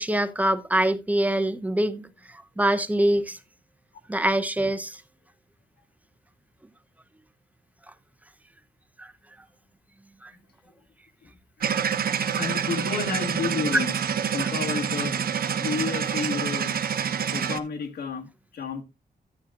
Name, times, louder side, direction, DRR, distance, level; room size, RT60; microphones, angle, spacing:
voice 1, 0.0-3.4 4.1-5.0 9.0-9.1 10.2-10.3, right 1 dB, 10° right, 0.7 m, -24 dB
sound 1, 11.6-17.6, right 7 dB, 60° right, 0.9 m, -27 dB
voice 2, 12.4-13.9 14.3-15.2 15.6-16.7 17.3-18.8, left 5 dB, 70° left, 1.6 m, -31 dB
13.0 x 8.7 x 2.5 m
wide cardioid pair, 135°, 17 cm